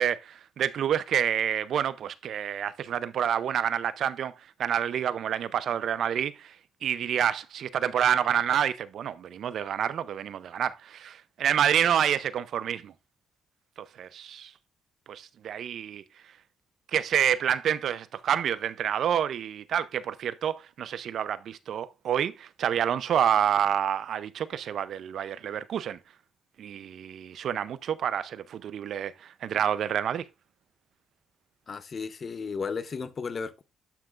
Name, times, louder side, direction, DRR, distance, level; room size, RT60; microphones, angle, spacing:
voice 1, 0.0-4.3 4.6-6.5 6.8-12.9 13.8-14.5 15.1-16.0 16.9-26.0 26.6-29.1 29.4-30.2, right 9 dB, 65° right, 0.5 m, -28 dB
voice 2, 31.7-33.6, left 5 dB, 40° left, 0.7 m, -34 dB
11.5 x 5.9 x 2.4 m
cardioid pair, 90°, 0 cm